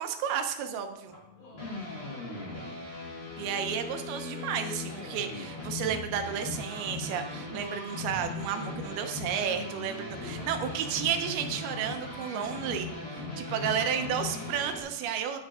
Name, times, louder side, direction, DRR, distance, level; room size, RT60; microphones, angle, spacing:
voice 1, 0.0-1.2 3.4-15.4, right 8 dB, 90° right, 6 dB, 2.9 m, -32 dB
sound 1, 1.1-14.8, left 3 dB, 20° left, 2.0 m, -38 dB
voice 2, 1.4-2.9 9.9-10.9 13.7-14.5, left 1 dB, 50° left, -4 dB, 4.8 m, -51 dB
10.0 x 9.6 x 3.7 m, 0.87 s
omnidirectional pair, 4.3 m